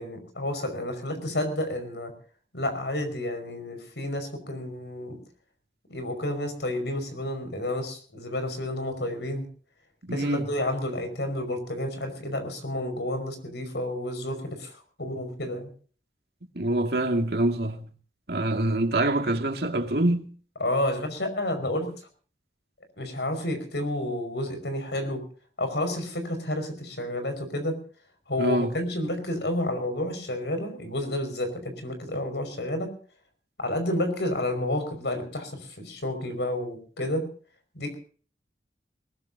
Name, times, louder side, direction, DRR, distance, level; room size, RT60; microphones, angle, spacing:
voice 1, 0.0-2.1 2.5-5.2 5.9-9.5 10.1-15.7 20.6-21.9 23.0-25.2 25.6-27.8 28.3-32.9 33.6-37.3 37.8-37.9, left 1 dB, 75° left, 5.4 m, -30 dB
voice 2, 10.1-10.4 16.6-17.9 18.3-20.3 28.4-28.7, right 1 dB, 60° right, 2.2 m, -25 dB
22.0 x 19.5 x 2.8 m
head